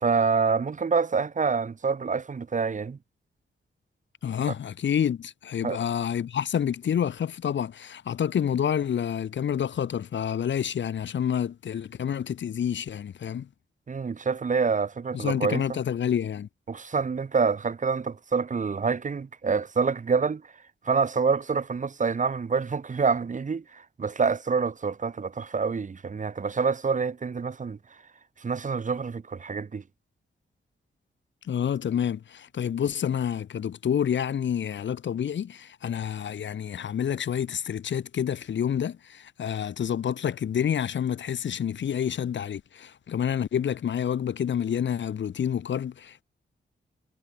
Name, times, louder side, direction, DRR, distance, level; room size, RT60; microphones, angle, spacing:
voice 1, 0.0-3.0 5.6-5.8 13.9-15.8 16.7-20.4 20.8-27.8 28.4-29.8, right 5 dB, 40° right, 1.2 m, -27 dB
voice 2, 4.2-13.5 15.1-16.5 31.4-46.2, left 8 dB, 65° left, 0.7 m, -28 dB
wide cardioid pair, 150°, 20 cm